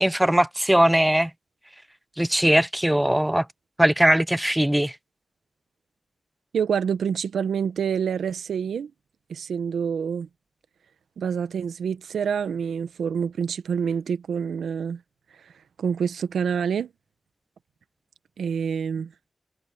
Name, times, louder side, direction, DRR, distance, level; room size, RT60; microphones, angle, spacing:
voice 1, 0.0-1.3 2.2-3.5 3.8-5.0, right 1 dB, 10° right, 0.6 m, -20 dB
voice 2, 6.5-8.9 9.3-10.3 11.2-15.0 15.3-16.9 18.4-19.1, right 7 dB, 85° right, 1.1 m, -27 dB
cardioid pair, 45°, 0 cm